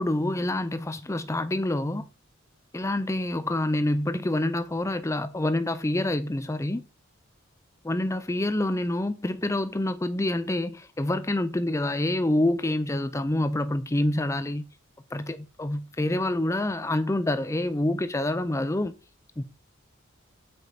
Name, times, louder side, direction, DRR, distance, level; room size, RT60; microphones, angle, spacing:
voice 1, 0.0-2.1 2.7-6.9 7.8-14.6 15.1-18.9 19.4-19.5, left 1 dB, 15° left, 0.5 m, -27 dB
7.7 x 5.1 x 2.8 m
head